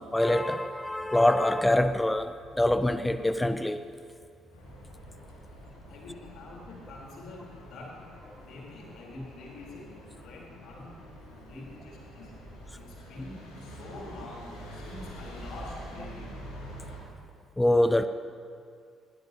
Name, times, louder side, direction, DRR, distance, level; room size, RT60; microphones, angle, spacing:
voice 1, 0.0-3.8 9.2-9.3 17.6-18.1, left 1 dB, 10° left, 0.6 m, -25 dB
sound 1, 4.5-17.0, equal, 70° left, 4.6 m, -46 dB
voice 2, 5.9-9.9 10.2-10.9 11.5-16.3, left 2 dB, 55° left, 3.8 m, -47 dB
21.0 x 17.0 x 2.9 m
figure-of-eight pair, 45°, 0 cm